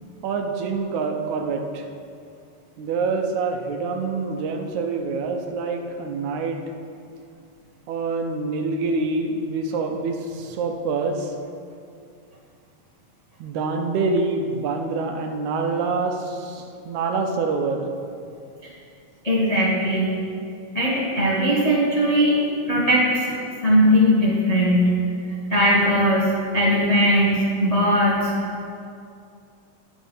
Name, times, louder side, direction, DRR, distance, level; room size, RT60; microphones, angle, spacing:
voice 1, 0.2-1.9 2.8-6.6 7.9-11.3 13.4-17.9, right 4 dB, 75° right, 4 dB, 2.1 m, -26 dB
voice 2, 19.2-20.1 20.7-22.4 22.6-23.4 23.6-24.9 25.5-26.2 26.5-28.3, equal, 70° left, -7 dB, 0.3 m, -19 dB
10.5 x 6.0 x 5.5 m, 2.4 s
omnidirectional pair, 3.5 m